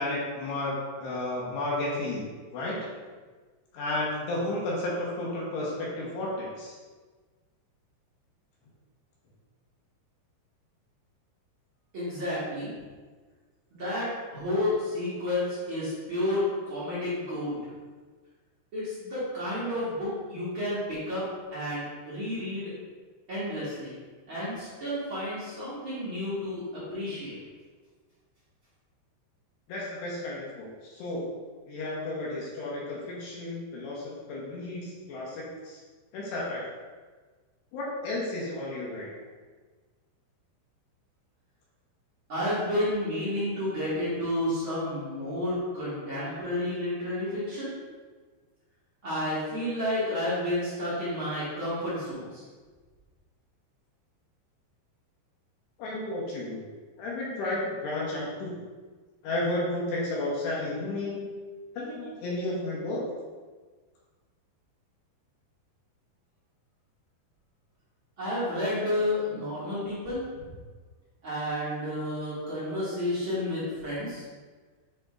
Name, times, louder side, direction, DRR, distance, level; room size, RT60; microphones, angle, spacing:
voice 1, 0.0-2.2 2.5-2.8 3.7-6.7 29.7-31.2 31.7-35.8 36.1-36.6 37.7-39.1 55.8-56.6 57.0-58.6 59.2-61.3 61.7-63.0, left 1 dB, 75° left, -5 dB, 2.9 m, -32 dB
voice 2, 11.9-12.7 13.7-17.6 18.7-21.2 21.5-22.7 23.3-23.9 24.3-27.4 42.3-47.7 49.0-52.4 68.2-70.2 71.2-74.2, left 1 dB, 55° right, -11 dB, 1.4 m, -31 dB
7.7 x 5.1 x 2.5 m, 1.4 s
omnidirectional pair, 5.4 m